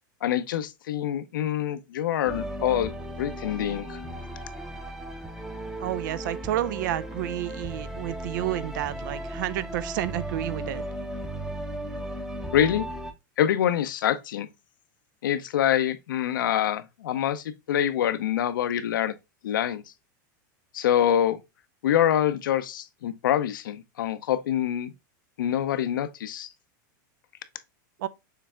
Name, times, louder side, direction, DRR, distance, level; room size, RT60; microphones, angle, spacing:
voice 1, 0.2-2.9 3.2-4.0 12.5-12.9 13.4-14.5 15.2-19.1 19.4-19.8 20.7-21.4 21.8-24.9 25.4-26.5, left 10 dB, 90° left, 0.6 m, -25 dB
sound 1, 2.3-13.1, right 1 dB, 5° right, 0.7 m, -36 dB
voice 2, 5.8-10.8 28.0-28.1, right 13 dB, 70° right, 0.5 m, -30 dB
6.7 x 3.3 x 2.2 m
supercardioid pair, 135°, 11 cm